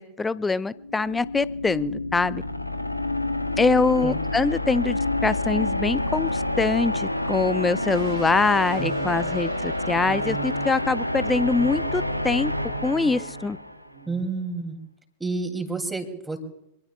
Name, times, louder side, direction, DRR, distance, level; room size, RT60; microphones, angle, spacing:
voice 1, 0.0-2.4 3.6-12.5 12.8-13.6, left 3 dB, 10° left, 19 dB, 0.5 m, -24 dB
sound 1, 0.8-13.9, left 2 dB, 90° left, 0.8 m, -28 dB
sound 2, 7.9-13.6 13.9-14.2, right 10 dB, 45° right, 1.6 m, -40 dB
voice 2, 14.1-14.8 15.2-16.4, right 3 dB, 5° right, 5 dB, 3.1 m, -29 dB
26.5 x 20.5 x 2.5 m, 0.84 s
figure-of-eight pair, 90°, 0 cm